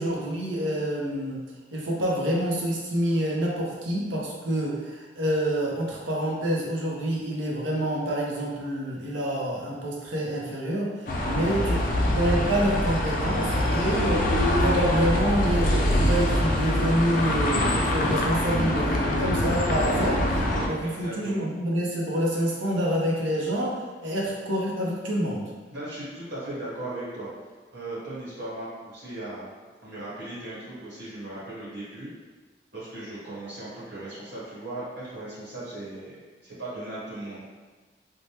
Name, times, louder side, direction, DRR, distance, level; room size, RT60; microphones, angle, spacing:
voice 1, 0.0-1.4 1.7-11.8 12.1-14.3 14.6-25.5, equal, 90° right, -3 dB, 0.7 m, -27 dB
sound 1, 11.1-20.7, left 1 dB, 45° left, 0.3 m, -24 dB
voice 2, 11.2-11.9 13.7-14.0 20.8-21.4 25.7-27.3 27.7-29.5 29.8-32.1 32.7-37.4, right 1 dB, 70° right, -9 dB, 1.2 m, -38 dB
3.2 x 2.1 x 2.8 m, 1.4 s
head